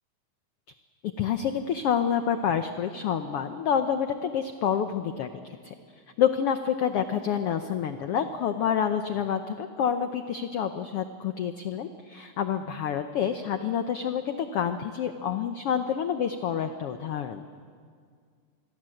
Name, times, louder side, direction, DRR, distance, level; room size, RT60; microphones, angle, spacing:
voice 1, 1.2-5.7 6.2-17.4, left 8 dB, 75° left, 8 dB, 1.4 m, -28 dB
27.0 x 22.0 x 7.8 m, 2.1 s
omnidirectional pair, 3.7 m